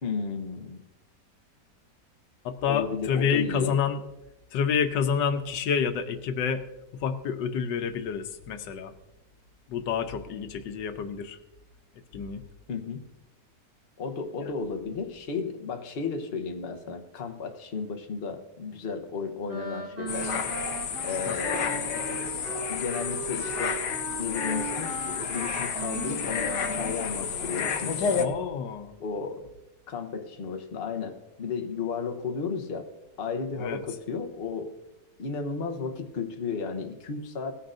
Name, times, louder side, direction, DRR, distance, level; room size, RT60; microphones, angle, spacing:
voice 1, 0.0-0.8 2.7-3.7 12.7-13.0 14.0-20.5 21.0-22.4 22.7-23.8 24.2-24.9 25.3-28.3 29.0-29.5 29.9-32.9 33.2-34.7 35.2-37.5, left 5 dB, 40° left, 5 dB, 1.0 m, -33 dB
voice 2, 2.4-4.0 4.5-6.6 6.9-8.9 9.7-11.4 12.1-12.4 14.4-14.5 21.3-21.4 28.2-29.0 33.6-33.8, left 7 dB, 90° left, 8 dB, 1.5 m, -28 dB
Wind instrument woodwind instrument, 19.5-27.0, right 3 dB, 45° right, 3.6 m, -37 dB
sound 1, 20.1-28.3, left 6 dB, 70° left, 1.5 m, -31 dB
17.5 x 9.7 x 2.6 m, 0.97 s
omnidirectional pair, 1.9 m